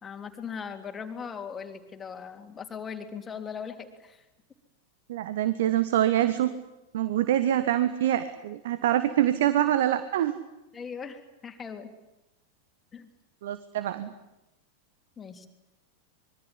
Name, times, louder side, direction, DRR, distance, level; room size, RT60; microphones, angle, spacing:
voice 1, 0.0-4.2 10.7-11.9 12.9-13.1 15.2-15.5, left 6 dB, 20° left, 6 dB, 3.3 m, -39 dB
voice 2, 5.1-6.5 6.9-10.3 13.4-14.1, right 12 dB, 55° right, 13 dB, 1.4 m, -25 dB
25.0 x 23.0 x 10.0 m, 0.95 s
figure-of-eight pair, 90°, 0 cm